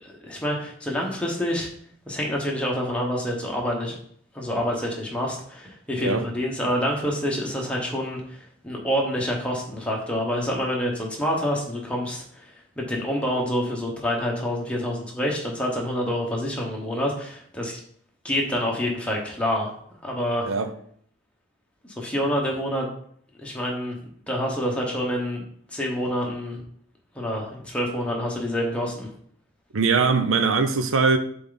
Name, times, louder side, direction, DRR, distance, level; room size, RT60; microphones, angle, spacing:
voice 1, 0.0-1.7 2.1-4.0 4.3-12.4 12.8-17.8 18.2-19.7 20.0-20.5 21.8-22.9 23.4-24.0 24.3-26.6 27.1-29.1, equal, 5° left, 1.1 m, -27 dB
voice 2, 29.7-31.2, right 4 dB, 70° right, 0.6 m, -21 dB
6.9 x 3.5 x 3.9 m
head